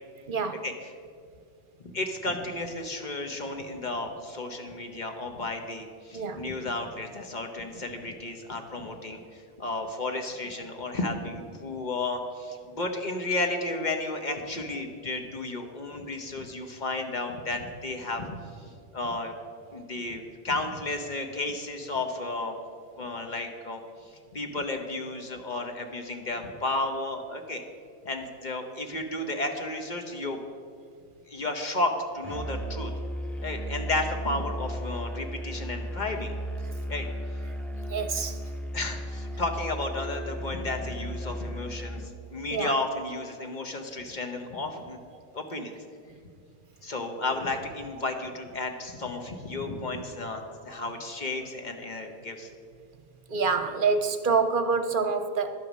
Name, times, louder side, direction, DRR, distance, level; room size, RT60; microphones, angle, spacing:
voice 1, 0.3-0.6 6.1-6.5 12.6-12.7 32.4-32.5 34.3-34.4 36.6-36.7 37.9-38.4 42.0-42.1 42.5-42.8 53.3-55.6, right 4 dB, 60° right, 8 dB, 0.8 m, -27 dB
voice 2, 1.8-18.4 18.6-19.3 19.7-22.6 23.0-23.8 24.3-27.6 28.0-30.4 31.3-32.9 33.4-36.3 36.9-37.1 38.7-45.0 45.3-45.7 46.8-52.5, left 2 dB, 50° left, 4 dB, 1.1 m, -33 dB
Musical instrument, 32.2-42.2, equal, ahead, 0.4 m, -35 dB
11.5 x 8.5 x 6.2 m, 2.2 s
omnidirectional pair, 1.0 m